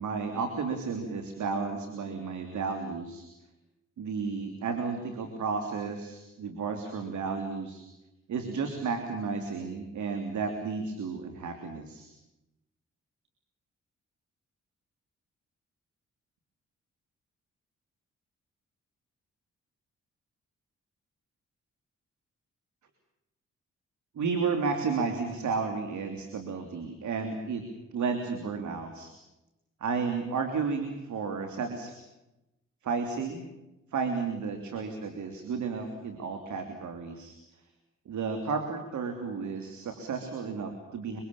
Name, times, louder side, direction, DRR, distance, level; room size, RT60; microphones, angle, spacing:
voice 1, 0.0-3.3 4.0-7.8 8.3-12.1 24.1-27.7 27.9-29.1 29.8-32.0 32.8-33.5 33.9-37.3 38.0-41.2, right 5 dB, 80° right, 5 dB, 3.1 m, -32 dB
24.5 x 23.5 x 7.1 m, 0.95 s
cardioid pair, 65°, 29 cm